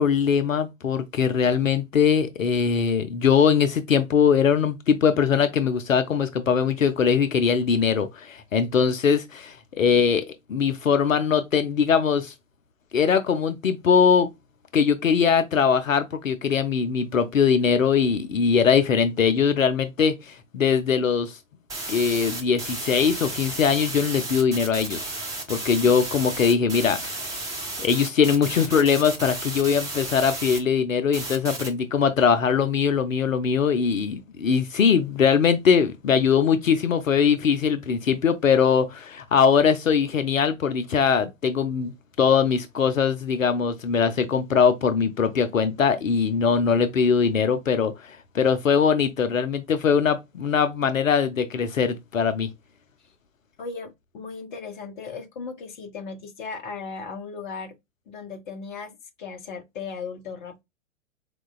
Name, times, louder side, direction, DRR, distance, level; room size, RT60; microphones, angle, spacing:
voice 1, 0.0-12.3 12.9-14.3 14.7-21.4 21.9-25.0 25.5-27.4 27.8-41.9 42.2-52.5, left 6 dB, 80° left, 0.6 m, -21 dB
sound 1, 21.7-30.6 31.1-31.7, right 2 dB, 10° right, 0.8 m, -33 dB
voice 2, 53.6-57.7 58.1-60.6, left 5 dB, 35° left, 0.8 m, -37 dB
4.5 x 2.2 x 2.3 m
figure-of-eight pair, 110°, 40 cm